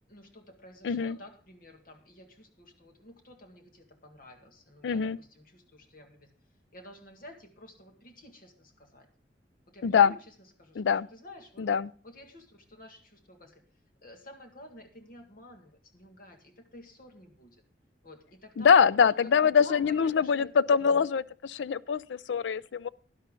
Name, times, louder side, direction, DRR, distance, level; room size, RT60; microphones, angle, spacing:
voice 1, 0.1-6.3 6.7-9.1 9.7-11.7 12.0-13.6 14.0-17.6 18.0-18.8 19.2-21.0, left 1 dB, 55° left, 1.9 m, -51 dB
voice 2, 0.8-1.2 4.8-5.2 9.8-10.1 10.8-11.1 11.6-11.9 18.6-22.9, left 6 dB, 90° left, 0.4 m, -24 dB
11.0 x 11.0 x 3.8 m
head